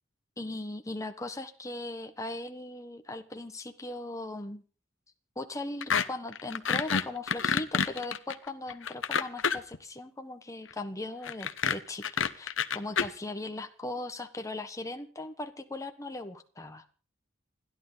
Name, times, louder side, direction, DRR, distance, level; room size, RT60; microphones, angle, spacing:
voice 1, 0.4-4.6 5.3-12.0 12.3-16.8, left 2 dB, 15° left, 6 dB, 1.3 m, -38 dB
Stretching effect, 5.8-6.0 6.3-9.8 11.2-13.1, left 6 dB, 70° left, 1.1 m, -28 dB
29.0 x 11.5 x 4.0 m, 0.39 s
head